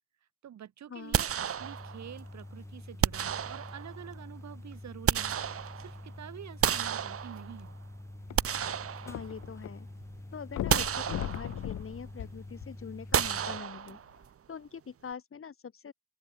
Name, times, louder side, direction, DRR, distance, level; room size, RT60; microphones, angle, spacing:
voice 1, 0.4-5.4 5.8-7.8, right 10 dB, 65° right, 7.0 m, -47 dB
sound 1, 1.1-2.2 3.0-4.1 4.7-6.1 6.6-7.7 8.1-9.6 10.0-10.1 10.7-11.8 13.1-14.2, right 8 dB, 50° right, 1.5 m, -31 dB
sound 2, 1.6-13.6, left 1 dB, 10° left, 6.5 m, -47 dB
sound 3, 8.2-9.7 10.0-10.1 10.5-13.1 13.8-13.9, left 12 dB, 70° left, 1.5 m, -38 dB
voice 2, 9.0-9.9 10.3-14.0 14.5-15.9, left 6 dB, 45° left, 7.5 m, -43 dB
open air
cardioid pair, 90°, 30 cm